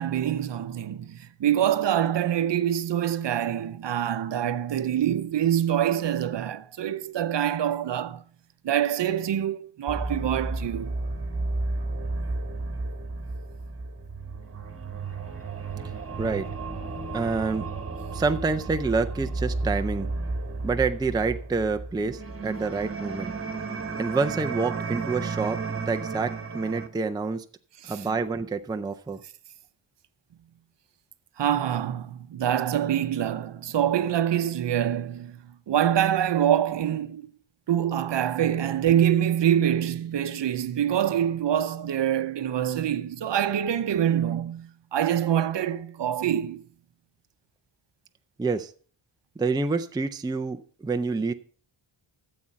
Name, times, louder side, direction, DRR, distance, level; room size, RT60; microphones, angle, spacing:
voice 1, 0.0-8.2 8.6-10.9 27.8-27.9 31.4-35.4 35.7-37.2 37.7-46.6, right 10 dB, 60° right, 0.8 m, -25 dB
sound 1, 9.9-26.9, right 3 dB, 25° right, 1.5 m, -33 dB
voice 2, 16.2-16.5 17.1-17.7 18.1-20.1 20.6-23.3 23.9-27.5 27.9-29.2 48.4-48.7 49.4-51.3, right 4 dB, 10° right, 0.4 m, -27 dB
13.5 x 7.7 x 5.6 m
wide cardioid pair, 175°, 49 cm